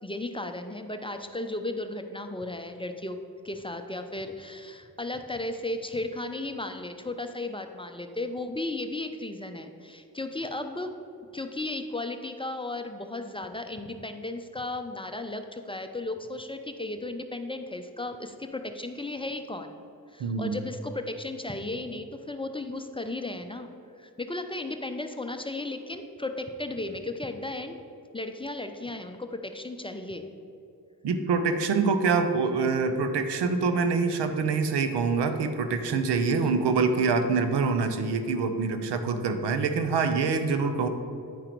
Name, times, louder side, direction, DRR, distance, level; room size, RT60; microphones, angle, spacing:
voice 1, 0.0-3.2 3.4-10.9 11.3-19.8 20.1-23.7 24.0-27.8 28.1-30.3 36.2-36.6, left 2 dB, 15° left, 6 dB, 0.6 m, -35 dB
voice 2, 20.2-20.6 31.0-40.9, right 4 dB, 75° right, 8 dB, 0.8 m, -25 dB
9.3 x 4.9 x 4.5 m, 2.7 s
supercardioid pair, 55°, 41 cm